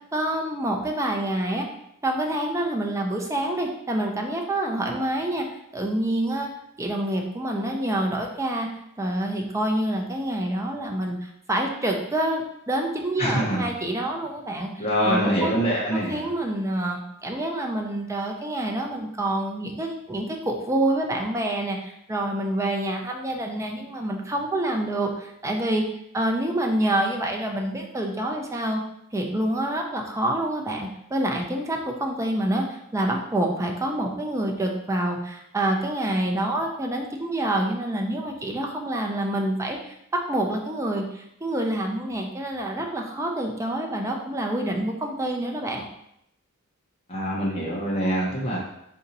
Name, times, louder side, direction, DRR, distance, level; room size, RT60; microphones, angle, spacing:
voice 1, 0.1-1.6 2.0-5.4 5.7-6.5 6.8-8.7 9.0-15.5 15.9-25.8 26.1-28.8 29.1-45.8, right 1 dB, 15° right, 1 dB, 0.5 m, -27 dB
voice 2, 13.2-13.7 14.8-16.2 47.1-48.6, equal, 30° left, -5 dB, 0.8 m, -24 dB
4.0 x 2.7 x 4.0 m, 0.77 s
head